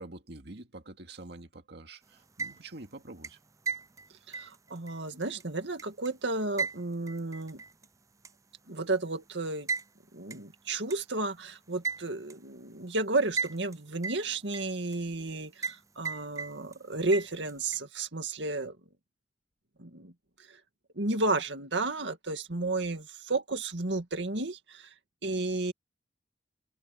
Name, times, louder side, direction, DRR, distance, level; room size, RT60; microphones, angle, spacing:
voice 1, 0.0-3.4, right 2 dB, 65° right, 2.1 m, -46 dB
sound 1, 2.2-2.8 3.2-6.1 6.6-7.9 8.2-8.3 9.7-9.9 10.3-10.4 10.9-11.0 11.8-12.4 13.4-13.8 14.0-15.0 15.6-16.8 17.1-17.8, right 4 dB, 20° right, 0.5 m, -35 dB
voice 2, 4.3-7.6 8.7-9.7 10.1-18.8 19.8-20.1 20.5-20.6 21.0-24.9 25.2-25.7, right 2 dB, 80° right, 2.1 m, -32 dB
head